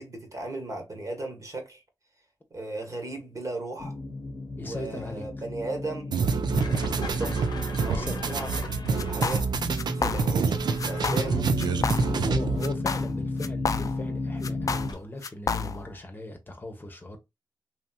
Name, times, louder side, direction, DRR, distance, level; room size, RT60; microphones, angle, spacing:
voice 1, 0.0-1.8 2.5-3.9 4.6-6.1 6.9-7.5 7.8-9.4 9.9-11.6, right 2 dB, 45° right, 1.2 m, -36 dB
sound 1, 3.8-14.9, left 2 dB, 65° left, 0.7 m, -34 dB
voice 2, 4.6-5.3 7.9-8.2 12.1-17.2, left 2 dB, 25° left, 0.8 m, -38 dB
sound 2, 6.1-12.7, right 5 dB, 70° right, 0.4 m, -27 dB
sound 3, 9.0-9.5 9.8-10.5 10.8-11.3 11.6-12.3 12.6-14.1 14.4-15.9, left 5 dB, 50° left, 0.3 m, -30 dB
2.9 x 2.7 x 2.2 m
cardioid pair, 50°, 8 cm